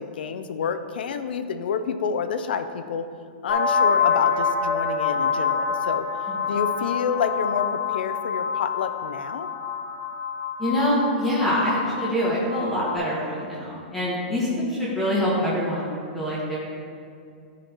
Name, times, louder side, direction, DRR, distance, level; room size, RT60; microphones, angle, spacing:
voice 1, 0.0-3.1 3.4-6.1 6.5-9.5, left 6 dB, 70° left, 9 dB, 0.5 m, -28 dB
sound 1, 3.5-13.0, left 6 dB, 45° left, 1.3 m, -26 dB
voice 2, 10.6-16.6, equal, ahead, -9 dB, 1.3 m, -25 dB
12.5 x 5.1 x 2.9 m, 2.5 s
hypercardioid pair, 170°, 6 cm